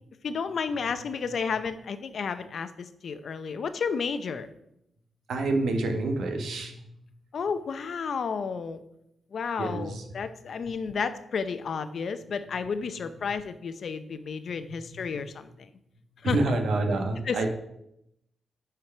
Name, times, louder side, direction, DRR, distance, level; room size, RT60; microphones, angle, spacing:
voice 1, 0.2-4.5 7.3-8.8 9.3-15.7 16.2-16.4 17.3-17.4, left 5 dB, 60° left, 11 dB, 0.6 m, -32 dB
voice 2, 5.3-6.8 9.6-10.0 14.7-15.3 16.2-17.5, right 2 dB, 80° right, 4 dB, 1.3 m, -28 dB
11.0 x 4.7 x 4.6 m, 0.79 s
cardioid pair, 110°, 0 cm